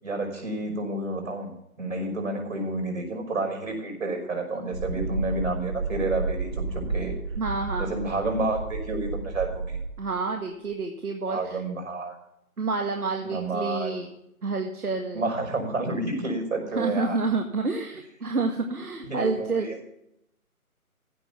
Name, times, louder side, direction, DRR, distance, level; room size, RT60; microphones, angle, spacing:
voice 1, 0.0-7.1 7.8-9.8 11.3-12.2 13.2-14.0 15.1-17.2 19.0-19.8, right 2 dB, 60° right, 3 dB, 5.8 m, -30 dB
sound 1, 4.7-10.1, right 4 dB, 30° right, 1.5 m, -32 dB
voice 2, 7.4-7.9 10.0-11.6 12.6-14.1 14.4-15.3 16.8-19.7, right 4 dB, 80° right, 4 dB, 1.9 m, -29 dB
15.5 x 6.5 x 6.9 m, 0.79 s
figure-of-eight pair, 160°, 44 cm